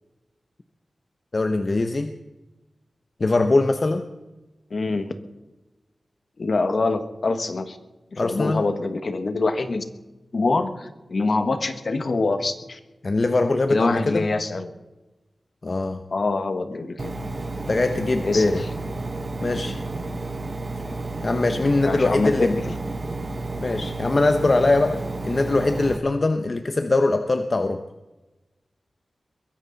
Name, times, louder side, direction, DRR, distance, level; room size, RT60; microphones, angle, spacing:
voice 1, 1.3-2.1 3.2-4.0 8.2-8.6 13.0-14.3 15.6-16.0 17.7-18.6 19.4-19.8 21.2-22.5 23.6-25.0 25.2-27.8, left 2 dB, 45° left, 7 dB, 0.9 m, -22 dB
voice 2, 4.7-5.1 6.4-7.8 8.1-9.8 10.3-12.8 13.7-14.7 16.1-17.2 18.2-18.4 21.8-22.7, left 3 dB, 60° left, 9 dB, 1.4 m, -24 dB
Engine, 17.0-26.0, right 2 dB, 40° right, 1.0 m, -31 dB
22.0 x 15.5 x 4.1 m, 1.1 s
wide cardioid pair, 85°, 0 cm